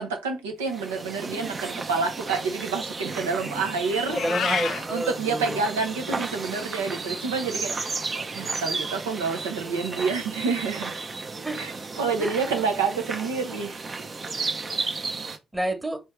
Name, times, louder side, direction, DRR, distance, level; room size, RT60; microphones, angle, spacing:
voice 1, 0.0-4.2 4.9-8.0 8.3-11.0 11.6-11.7 12.0-13.8, right 5 dB, 85° right, 0.8 m, -28 dB
sound 1, 0.7-15.4, right 3 dB, 40° right, 0.7 m, -33 dB
Meow, 4.0-4.8, left 7 dB, 60° left, 0.5 m, -28 dB
voice 2, 4.2-5.6 11.4-11.6 12.2-12.3 14.6-14.9 15.5-16.0, right 1 dB, 15° right, 1.3 m, -29 dB
4.3 x 3.5 x 3.2 m
figure-of-eight pair, 40°, 0 cm